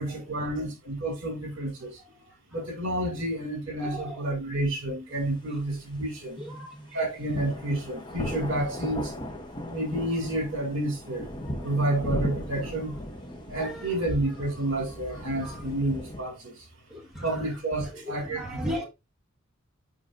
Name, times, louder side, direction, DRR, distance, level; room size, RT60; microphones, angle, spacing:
voice 1, 0.0-2.0 2.5-6.4 6.9-9.1 9.7-11.3 11.6-13.0 13.5-16.7 17.2-18.4 18.8-18.9, right 1 dB, 60° right, 2.6 m, -30 dB
voice 2, 3.8-4.2 6.4-6.9 13.6-13.7 15.4-15.6 16.9-17.2 18.3-18.8, equal, ahead, 1.4 m, -35 dB
sound 1, 7.3-16.2, equal, 20° left, 0.8 m, -37 dB
7.3 x 5.0 x 2.6 m
head